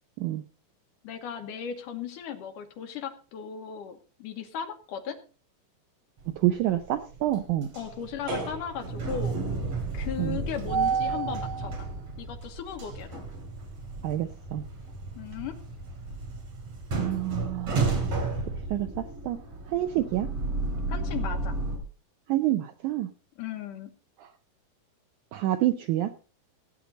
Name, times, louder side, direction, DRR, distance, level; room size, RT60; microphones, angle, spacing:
voice 1, 1.0-5.2 7.7-9.4 9.9-11.9 12.2-13.2 15.2-15.6 20.9-21.5 23.4-23.9, left 8 dB, 65° left, 7 dB, 2.4 m, -36 dB
sound 1, 6.2-6.8 7.1-21.8, right 4 dB, 45° right, 3.3 m, -32 dB
voice 2, 6.4-7.7 10.2-10.4 14.0-14.6 17.0-17.8 18.7-19.4 19.7-20.3 22.3-23.1 24.2-24.3 25.3-26.1, right 14 dB, 80° right, 9 dB, 1.8 m, -27 dB
17.0 x 9.2 x 4.0 m, 0.36 s
omnidirectional pair, 4.3 m